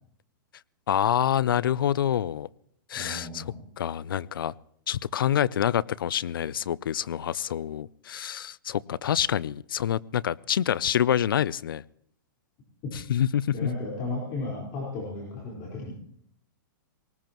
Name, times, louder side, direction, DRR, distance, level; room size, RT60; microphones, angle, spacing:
voice 1, 0.9-2.5 2.9-3.4 3.8-4.5 4.9-11.8 13.1-13.7, left 10 dB, 85° left, 23 dB, 0.5 m, -26 dB
voice 2, 2.9-3.6 12.8-12.9 13.5-15.9, left 2 dB, 35° left, -4 dB, 4.4 m, -34 dB
19.5 x 19.0 x 3.0 m, 0.68 s
hypercardioid pair, 150°, 11 cm